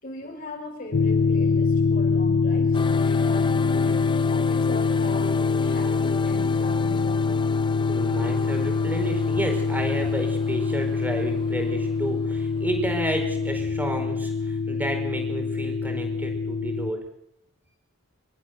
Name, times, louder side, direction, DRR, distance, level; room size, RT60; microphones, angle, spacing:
voice 1, 0.0-4.0 4.3-7.5, left 2 dB, 40° left, 0 dB, 5.4 m, -39 dB
sound 1, 0.9-16.9, left 4 dB, 75° left, 0.8 m, -24 dB
sound 2, 2.7-13.1, left 3 dB, 20° left, 0.7 m, -36 dB
voice 2, 7.9-17.0, right 1 dB, 10° right, 4 dB, 4.7 m, -31 dB
26.0 x 14.0 x 8.1 m, 0.80 s
head